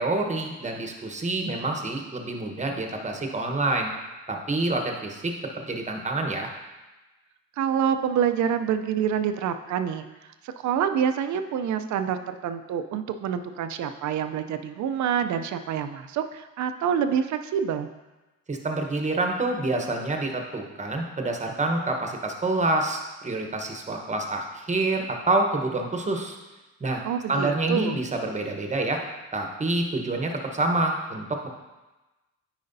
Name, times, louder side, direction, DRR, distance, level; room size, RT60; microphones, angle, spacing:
voice 1, 0.0-3.9 4.3-6.5 18.5-26.4 26.8-27.0 27.3-29.0 29.3-31.5, right 2 dB, 25° right, 3 dB, 1.0 m, -27 dB
voice 2, 7.6-10.1 10.4-17.9 27.0-28.0, right 8 dB, 70° right, 9 dB, 0.5 m, -27 dB
9.4 x 4.9 x 2.7 m, 1.1 s
cardioid pair, 90°, 30 cm